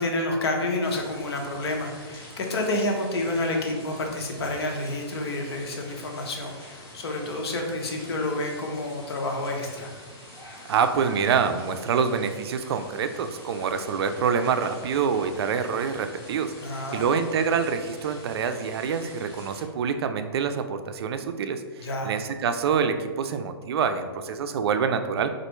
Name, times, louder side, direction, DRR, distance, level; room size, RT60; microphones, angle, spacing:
voice 1, 0.0-9.9 16.6-17.1 21.8-22.1, left 2 dB, 80° left, 1 dB, 0.8 m, -29 dB
sound 1, 0.8-19.6, left 1 dB, 25° left, 1.2 m, -46 dB
voice 2, 10.7-25.3, right 6 dB, 75° right, 9 dB, 0.4 m, -26 dB
4.3 x 2.5 x 3.0 m, 1.5 s
hypercardioid pair, 140°, 13 cm